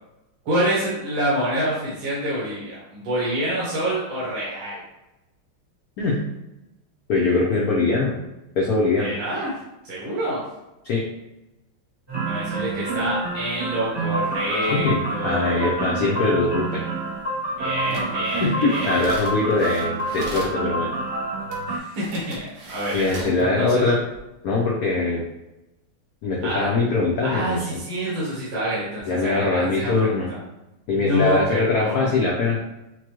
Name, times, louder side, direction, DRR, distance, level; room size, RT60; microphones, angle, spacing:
voice 1, 0.4-4.8 9.0-9.5 9.8-10.4 12.2-15.8 17.6-19.0 21.7-23.9 26.4-26.7 27.2-30.4 30.9-32.1, right 1 dB, 75° right, -7 dB, 2.0 m, -27 dB
voice 2, 7.1-8.2 8.6-9.1 10.8-11.0 14.7-16.8 18.4-20.9 22.9-24.0 24.4-25.2 26.2-27.8 29.1-30.3 30.9-32.6, left 3 dB, 70° left, -3 dB, 0.9 m, -22 dB
sound 1, 12.1-21.8, right 2 dB, 45° right, 0.3 m, -28 dB
sound 2, 17.8-20.6 21.5-21.6 21.9-23.4 24.0-24.2, right 2 dB, 60° right, 1.3 m, -40 dB
6.1 x 2.2 x 3.0 m, 0.95 s
omnidirectional pair, 2.3 m